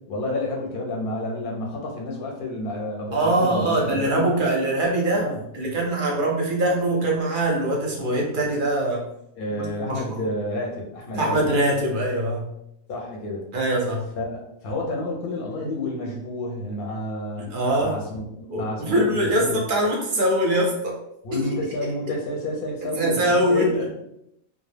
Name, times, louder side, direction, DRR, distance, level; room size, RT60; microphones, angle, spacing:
voice 1, 0.0-4.4 5.1-5.4 9.4-11.4 12.9-13.4 14.2-19.6 21.2-24.0, left 1 dB, 60° left, -1 dB, 0.7 m, -30 dB
voice 2, 3.1-5.3 5.5-9.0 9.6-10.2 11.1-12.5 13.5-14.0 17.4-17.9 18.5-21.0 23.0-23.7, right 1 dB, 60° right, -1 dB, 0.6 m, -23 dB
2.3 x 2.0 x 3.2 m, 0.78 s
omnidirectional pair, 1.2 m